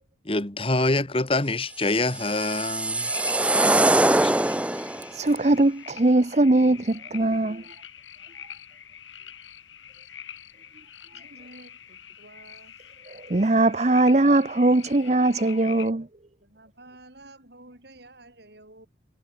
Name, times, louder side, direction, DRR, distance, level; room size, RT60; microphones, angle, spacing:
voice 1, 0.2-3.1 3.4-4.4, left 2 dB, 30° left, 1.5 m, -26 dB
sound 1, 1.9-5.1, right 1 dB, 5° right, 0.4 m, -22 dB
sound 2, 2.9-15.9, left 9 dB, 85° left, 5.7 m, -45 dB
voice 2, 5.1-7.6 13.1-16.1, right 2 dB, 35° right, 0.7 m, -21 dB
voice 3, 11.1-12.8 16.4-18.9, right 2 dB, 60° right, 7.4 m, -50 dB
head